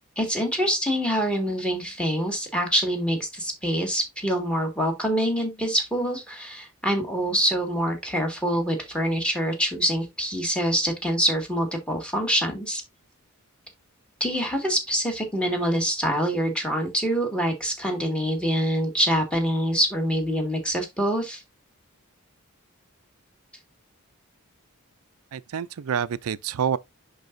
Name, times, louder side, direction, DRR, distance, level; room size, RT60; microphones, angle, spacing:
voice 1, 0.2-12.8 14.2-21.4, equal, 5° left, 1.9 m, -25 dB
voice 2, 25.3-26.8, right 7 dB, 85° right, 0.4 m, -27 dB
10.5 x 4.0 x 2.6 m
head